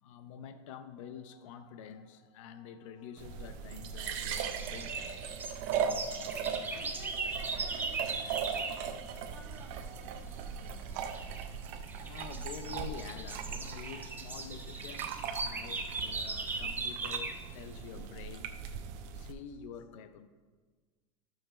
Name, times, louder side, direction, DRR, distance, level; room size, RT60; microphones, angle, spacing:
voice 1, 0.0-5.2 12.0-20.3, left 7 dB, 70° left, 10 dB, 0.7 m, -48 dB
sound 1, 3.2-19.3, right 7 dB, 50° right, 0.8 m, -39 dB
sound 2, 4.1-8.8 11.0-11.4 11.9-17.4, right 3 dB, 10° right, 0.6 m, -39 dB
voice 2, 6.7-11.0, right 4 dB, 30° right, 0 dB, 1.9 m, -54 dB
13.0 x 6.5 x 3.2 m, 1.4 s
supercardioid pair, 130°, 17 cm